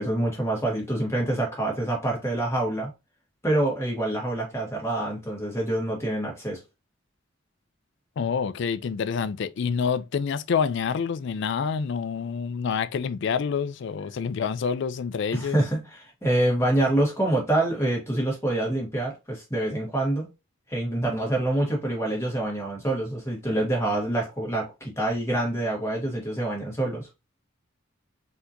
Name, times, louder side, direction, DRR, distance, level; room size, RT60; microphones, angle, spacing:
voice 1, 0.0-2.9 3.4-6.6 15.3-20.3 20.7-27.1, right 1 dB, 15° left, 1.5 m, -26 dB
voice 2, 8.2-15.6, left 6 dB, 60° left, 0.3 m, -27 dB
4.1 x 2.9 x 2.6 m
head